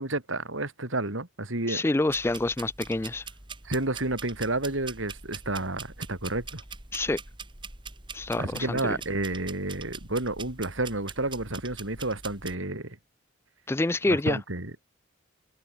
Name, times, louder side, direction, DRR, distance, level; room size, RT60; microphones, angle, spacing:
voice 1, 0.0-1.8 3.6-6.6 8.4-13.0 14.1-14.9, right 2 dB, 75° right, 3.6 m, -31 dB
voice 2, 1.7-3.2 6.9-7.2 8.1-8.8 13.7-14.4, left 2 dB, 10° left, 0.3 m, -27 dB
sound 1, 2.1-12.6, right 5 dB, 25° right, 2.8 m, -43 dB
head